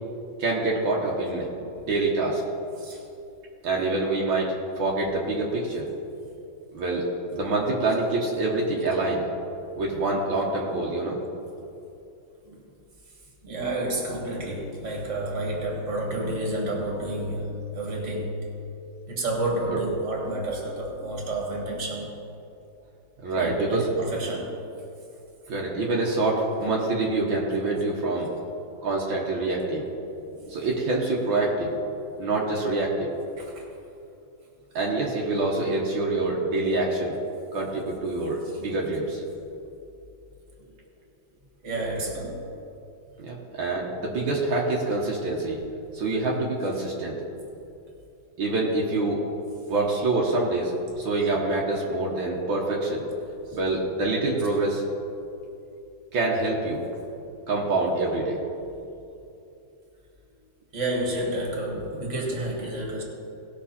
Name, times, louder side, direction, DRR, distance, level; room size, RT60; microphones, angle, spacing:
voice 1, 0.4-1.5 1.8-2.4 3.6-5.9 6.7-7.1 7.3-9.3 9.8-11.2 12.5-12.6 19.7-19.8 23.2-23.8 25.5-28.3 28.8-29.9 30.4-31.7 32.2-33.1 34.8-37.2 37.5-39.2 43.2-45.6 45.9-47.2 48.4-49.2 49.7-50.7 51.0-53.1 53.5-54.8 56.1-56.8 57.5-58.4, right 2 dB, 75° right, -3 dB, 2.1 m, -26 dB
voice 2, 13.4-18.5 19.1-22.1 23.3-24.9 30.3-30.4 31.9-32.0 33.4-33.6 41.6-42.5 53.5-53.6 60.7-63.0, right 1 dB, 35° right, -1 dB, 2.3 m, -30 dB
18.5 x 6.3 x 4.3 m, 2.7 s
omnidirectional pair, 2.2 m